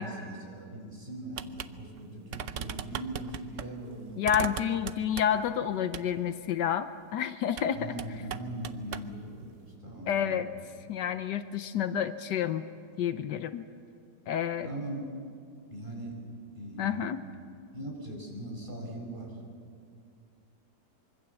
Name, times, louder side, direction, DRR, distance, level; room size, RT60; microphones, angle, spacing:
voice 1, 0.0-4.6 7.7-10.4 14.6-15.0 15.7-16.2 16.5-17.4 17.7-19.4, right 1 dB, 25° right, -2 dB, 6.1 m, -40 dB
sound 1, 1.4-1.7 2.0-2.1 2.3-3.7 4.2-5.5 5.9-6.1 7.5-7.7 8.0-9.1, right 8 dB, 60° right, 0.9 m, -38 dB
voice 2, 4.2-7.9 10.1-10.5 10.9-12.7 13.0-13.7 14.3-14.7 16.8-17.2, left 9 dB, 75° left, 11 dB, 1.4 m, -29 dB
25.0 x 24.0 x 7.1 m, 2.3 s
omnidirectional pair, 1.9 m